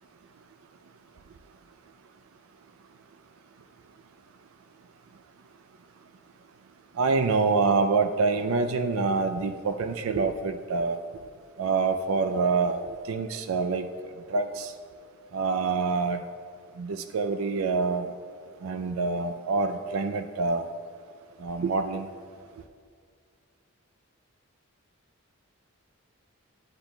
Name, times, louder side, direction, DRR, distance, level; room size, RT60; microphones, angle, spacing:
voice 1, 7.0-11.0 11.6-13.9 14.3-14.7 15.3-16.2 16.8-18.1 18.6-20.7 21.4-22.1, right 4 dB, 70° right, 8 dB, 0.4 m, -26 dB
11.5 x 7.9 x 2.3 m, 2.2 s
head